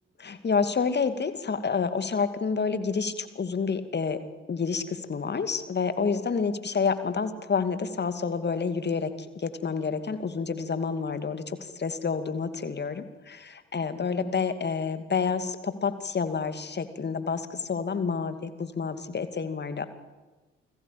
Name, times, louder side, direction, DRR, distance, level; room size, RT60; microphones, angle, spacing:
voice 1, 0.2-4.2 4.5-19.9, left 5 dB, 30° left, 10 dB, 2.5 m, -29 dB
29.0 x 20.0 x 8.8 m, 1.2 s
figure-of-eight pair, 45°, 32 cm